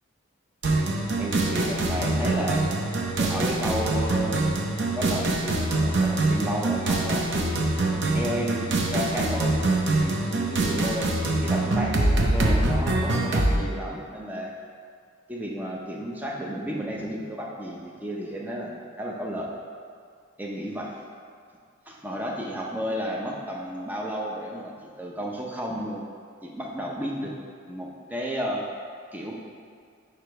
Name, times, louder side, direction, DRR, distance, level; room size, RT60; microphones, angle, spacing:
sound 1, 0.6-13.6, right 2 dB, 60° right, 0.7 m, -24 dB
voice 1, 0.7-2.6 3.2-4.7 5.0-7.6 8.1-9.6 9.8-14.5 15.3-19.5 20.4-20.9 21.9-26.1 26.4-27.3 27.7-28.6 29.1-29.3, equal, 10° right, -2 dB, 0.5 m, -32 dB
5.0 x 5.0 x 4.6 m, 2.2 s
head